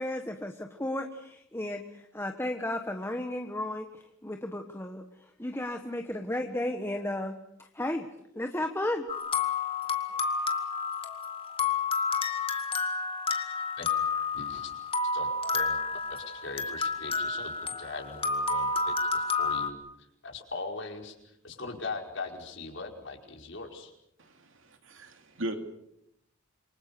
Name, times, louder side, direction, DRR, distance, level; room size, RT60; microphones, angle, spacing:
voice 1, 0.0-5.0 5.4-8.1 8.3-9.1, left 1 dB, 10° left, 5 dB, 1.2 m, -34 dB
sound 1, 9.1-19.7, left 4 dB, 25° left, 2.1 m, -30 dB
voice 2, 14.3-14.7 15.1-23.9, left 3 dB, 60° left, 2 dB, 5.1 m, -41 dB
voice 3, 24.8-25.6, right 1 dB, 70° right, 5 dB, 3.2 m, -36 dB
27.5 x 25.0 x 6.8 m, 0.79 s
head